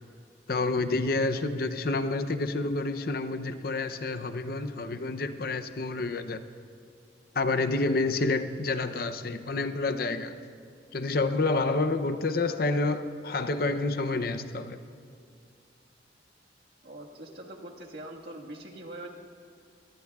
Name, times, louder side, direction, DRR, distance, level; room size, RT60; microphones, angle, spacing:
voice 1, 0.5-6.4 7.3-10.4 10.9-14.8, left 3 dB, 55° left, 10 dB, 0.6 m, -28 dB
voice 2, 16.8-19.1, right 1 dB, 65° right, -1 dB, 1.7 m, -43 dB
24.0 x 18.0 x 2.4 m, 2.4 s
head